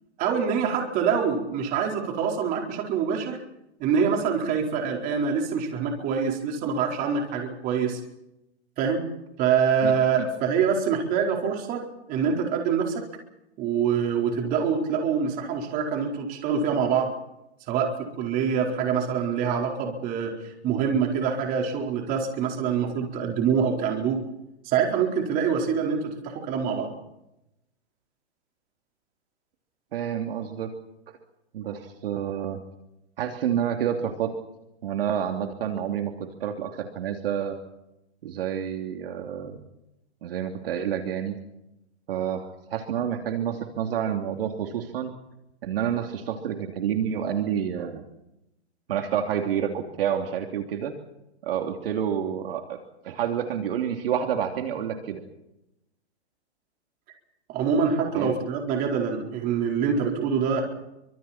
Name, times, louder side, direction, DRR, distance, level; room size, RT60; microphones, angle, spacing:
voice 1, 0.2-3.4 3.8-8.0 8.8-9.0 9.4-11.8 12.1-13.0 13.6-17.1 17.7-24.2 24.6-26.9 57.5-60.6, right 6 dB, 25° right, 2 dB, 4.4 m, -25 dB
voice 2, 29.9-30.7 31.5-32.6 33.2-34.3 34.8-37.6 38.2-39.6 40.2-41.4 42.1-45.1 45.6-48.0 48.9-50.9 51.4-52.8 53.0-55.2 58.1-58.4, right 9 dB, 55° right, 4 dB, 3.0 m, -28 dB
29.0 x 25.5 x 4.4 m, 0.88 s
hypercardioid pair, 155°, 34 cm